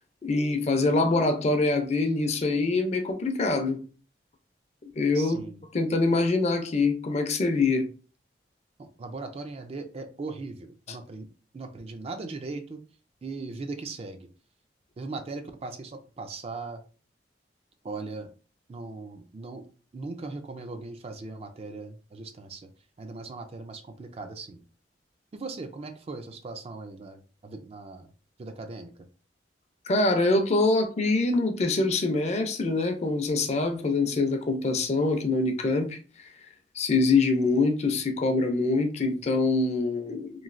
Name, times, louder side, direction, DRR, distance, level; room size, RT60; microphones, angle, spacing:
voice 1, 0.2-3.8 4.9-5.4 5.7-7.9 29.9-36.0 36.8-40.4, left 3 dB, 40° left, 5 dB, 0.5 m, -24 dB
voice 2, 5.1-5.6 8.8-11.3 11.5-12.8 13.2-14.3 15.0-16.8 17.8-18.3 18.7-19.6 19.9-22.7 23.0-24.6 25.3-28.1 28.4-28.9, right 3 dB, 35° right, 7 dB, 0.3 m, -39 dB
3.1 x 2.6 x 2.5 m, 0.37 s
head